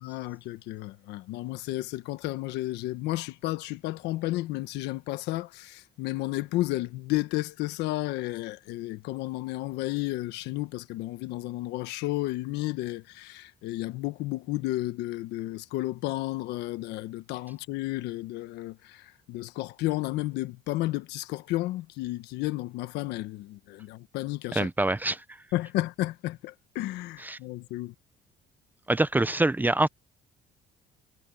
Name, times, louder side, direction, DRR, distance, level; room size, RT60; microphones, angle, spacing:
voice 1, 0.0-24.7 25.5-27.9, left 17 dB, 90° left, 1.3 m, -32 dB
voice 2, 24.5-25.2 27.2-27.4 28.9-29.9, right 2 dB, 10° right, 0.7 m, -25 dB
cardioid pair, 110°, 17 cm